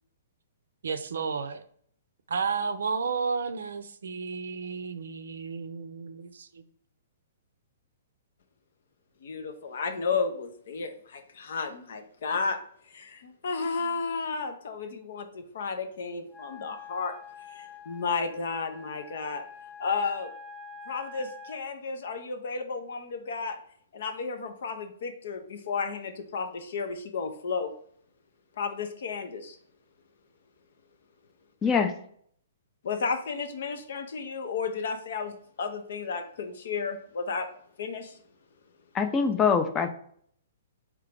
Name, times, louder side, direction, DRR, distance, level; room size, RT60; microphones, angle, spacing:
voice 1, 0.8-1.6 2.3-6.6, right 5 dB, 75° right, 0.4 m, -32 dB
voice 2, 9.2-12.6 12.9-17.2 17.5-19.4 19.8-20.3 20.9-23.6 23.9-27.7 28.6-29.6 32.8-37.5 37.8-38.2, left 5 dB, 65° left, 0.6 m, -33 dB
Wind instrument woodwind instrument, 16.3-21.7, left 4 dB, 5° left, 0.9 m, -46 dB
voice 3, 38.9-39.9, left 6 dB, 20° left, 0.5 m, -23 dB
3.7 x 3.3 x 3.4 m
hypercardioid pair, 125°, 0 cm